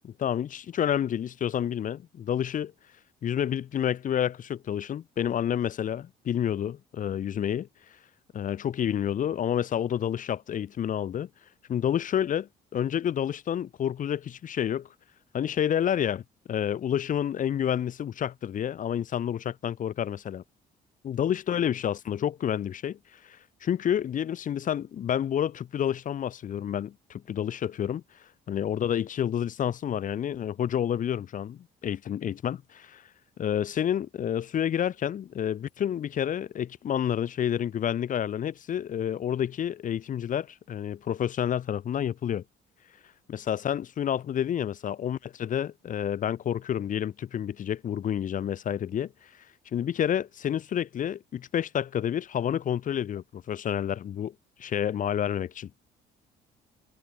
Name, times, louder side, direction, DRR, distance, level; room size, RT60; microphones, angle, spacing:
voice 1, 0.0-2.7 3.2-7.7 8.3-11.3 11.7-14.9 15.3-16.2 16.5-20.4 21.0-23.0 23.2-28.0 28.5-33.0 33.4-42.4 43.3-49.1 49.7-54.3 54.6-55.7, left 9 dB, 50° left, 2.6 m, -29 dB
cardioid pair, 110°, 17 cm